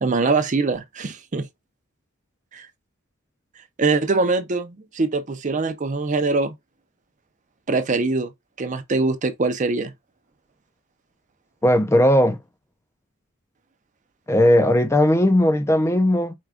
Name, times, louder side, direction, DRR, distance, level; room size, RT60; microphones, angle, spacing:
voice 1, 0.0-1.5 2.5-2.7 3.8-6.5 7.7-8.3 8.6-9.9, right 3 dB, 35° right, 0.5 m, -23 dB
voice 2, 11.6-12.4 14.3-16.3, left 1 dB, 15° left, 0.4 m, -17 dB
4.5 x 2.3 x 3.6 m
head